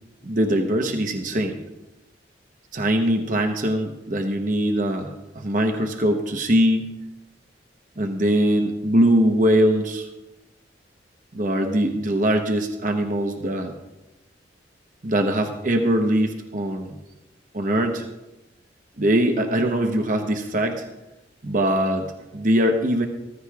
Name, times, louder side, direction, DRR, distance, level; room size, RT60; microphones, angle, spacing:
voice 1, 0.2-1.5 2.7-6.9 8.0-10.1 11.3-13.7 15.0-17.0 17.5-18.0 19.0-20.9 21.4-23.1, right 1 dB, 45° right, 5 dB, 0.9 m, -22 dB
15.0 x 14.5 x 2.4 m, 0.98 s
head